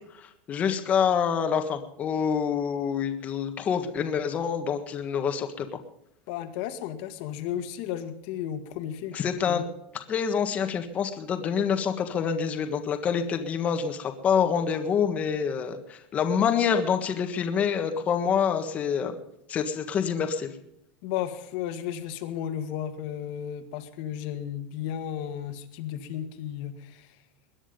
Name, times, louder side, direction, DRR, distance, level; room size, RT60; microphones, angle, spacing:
voice 1, 0.1-5.7 9.1-9.6 10.1-19.1 19.5-20.5, left 7 dB, 25° left, 6 dB, 1.6 m, -26 dB
voice 2, 6.3-9.6 21.0-27.1, left 10 dB, 60° left, 8 dB, 1.9 m, -34 dB
21.0 x 9.9 x 5.4 m, 0.76 s
supercardioid pair, 160°, 5 cm